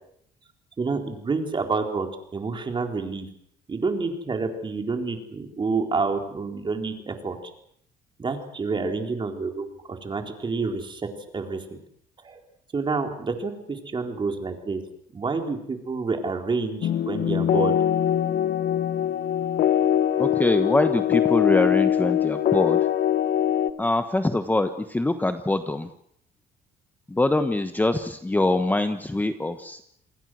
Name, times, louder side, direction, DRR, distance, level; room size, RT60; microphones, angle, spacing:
voice 1, 0.8-3.3 3.7-7.4 8.2-11.1 11.3-11.8 12.2-12.4 12.7-14.8 15.1-17.8, right 4 dB, 30° right, 4 dB, 4.1 m, -28 dB
sound 1, 16.8-23.7, left 10 dB, 65° left, 1.3 m, -22 dB
voice 2, 20.2-22.8 23.8-25.9 27.1-29.8, left 2 dB, 10° left, 9 dB, 1.2 m, -24 dB
28.0 x 21.0 x 6.4 m, 0.70 s
cardioid pair, 110°, 17 cm